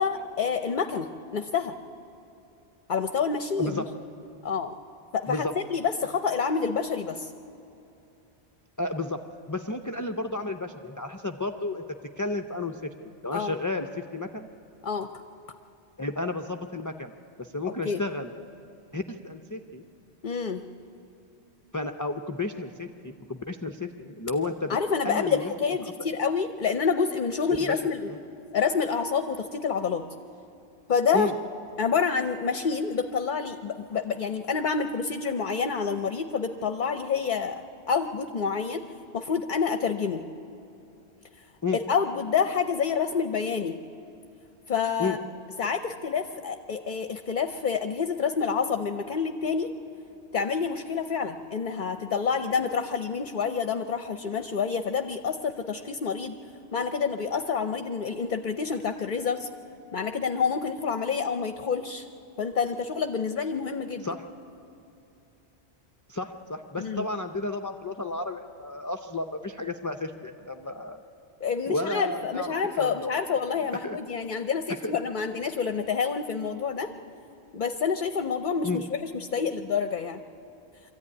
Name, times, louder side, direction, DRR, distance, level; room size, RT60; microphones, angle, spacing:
voice 1, 0.0-1.7 2.9-3.8 4.4-4.8 5.1-7.3 13.3-13.5 14.8-15.1 17.8-18.0 20.2-20.6 24.7-28.1 28.5-30.0 30.9-31.3 31.8-37.6 37.9-38.8 39.1-40.2 41.9-43.7 44.7-45.2 45.6-49.7 50.3-56.3 56.7-59.5 59.9-62.1 62.4-64.1 66.8-67.0 71.4-76.9 77.5-80.2, left 6 dB, 50° left, 8 dB, 0.8 m, -28 dB
voice 2, 8.8-9.2 9.5-11.8 12.2-12.9 13.2-14.5 16.0-17.1 17.4-18.3 18.9-19.8 21.7-24.8 25.0-25.5 27.6-27.8 28.1-28.2 31.1-31.3 41.6-41.8 45.0-45.2 64.0-64.2 66.1-71.0 71.7-72.5 72.8-73.1 73.8-74.0 74.7-75.0 78.6-78.8, left 2 dB, 20° left, 5 dB, 0.5 m, -32 dB
23.5 x 14.0 x 9.8 m, 2.8 s
omnidirectional pair, 1.1 m